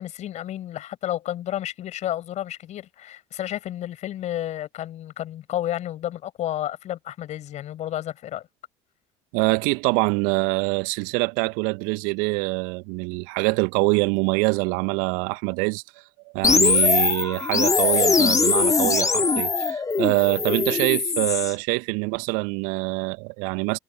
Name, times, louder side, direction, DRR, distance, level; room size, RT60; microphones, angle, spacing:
voice 1, 0.0-8.4, left 12 dB, 50° left, 6.2 m, -31 dB
voice 2, 9.3-15.8 16.3-23.8, right 32 dB, 60° right, 1.8 m, -24 dB
sound 1, 16.4-21.5, left 4 dB, 20° left, 2.8 m, -21 dB
figure-of-eight pair, 60°, 16 cm